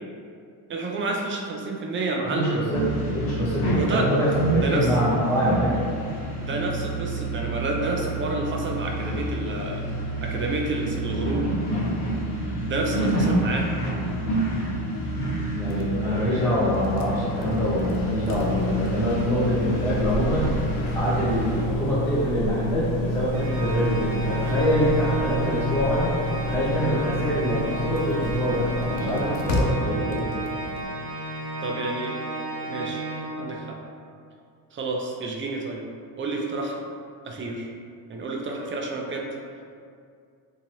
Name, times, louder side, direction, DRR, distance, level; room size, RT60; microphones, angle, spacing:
voice 1, 0.7-2.7 3.7-4.1 4.6-4.9 6.4-9.8 10.2-11.5 12.7-13.7 31.6-32.1 32.7-33.0 33.4-33.8 34.7-35.8 36.1-36.8 37.2-37.7 38.1-39.3, right 2 dB, 30° right, 0 dB, 0.4 m, -29 dB
voice 2, 2.3-5.8 15.6-20.5 20.9-26.1 26.4-30.3, equal, 5° left, -11 dB, 0.7 m, -25 dB
sound 1, 2.7-21.6, right 1 dB, 60° left, 1.1 m, -28 dB
sound 2, 15.6-30.8, equal, 85° left, 0.6 m, -30 dB
Organ, 23.3-33.9, right 1 dB, 70° right, 0.7 m, -33 dB
2.9 x 2.8 x 2.6 m, 2.3 s
cardioid pair, 95°, 44 cm